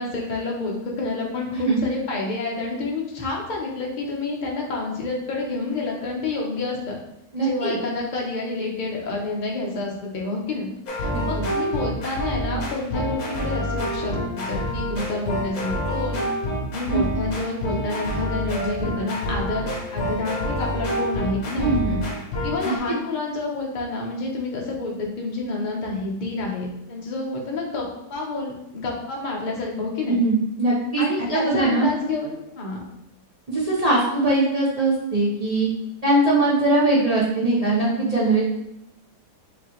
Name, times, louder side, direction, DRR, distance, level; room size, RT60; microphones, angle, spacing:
voice 1, 0.0-6.9 7.4-10.7 11.0-16.3 16.7-21.8 22.4-30.2 31.0-32.8, left 3 dB, 45° left, -1 dB, 0.7 m, -29 dB
voice 2, 7.3-7.8 11.1-11.2 16.9-17.0 21.6-22.0 22.6-22.7 30.1-31.0 31.3-31.9 33.5-35.7 36.0-38.4, right 2 dB, 45° right, -7 dB, 0.5 m, -21 dB
sound 1, 10.9-22.8, equal, 65° left, 1.6 m, -27 dB
4.8 x 2.9 x 3.0 m, 0.85 s
omnidirectional pair, 1.7 m